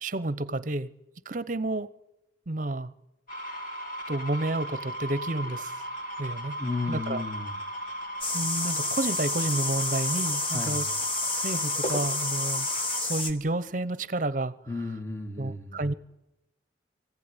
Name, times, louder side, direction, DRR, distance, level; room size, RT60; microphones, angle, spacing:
voice 1, 0.0-0.9 1.3-1.9 2.5-2.9 4.1-5.8 6.2-6.6 6.9-7.2 8.3-10.9 11.3-12.7 13.0-14.5 15.4-15.9, right 2 dB, 45° right, 0.8 m, -30 dB
sound 1, 3.3-13.0, equal, 45° left, 5.0 m, -36 dB
voice 2, 6.6-7.6 10.5-10.9 14.7-15.8, left 3 dB, 15° left, 1.8 m, -33 dB
sound 2, 8.2-13.3, left 2 dB, 30° left, 1.6 m, -30 dB
24.0 x 15.5 x 9.8 m
head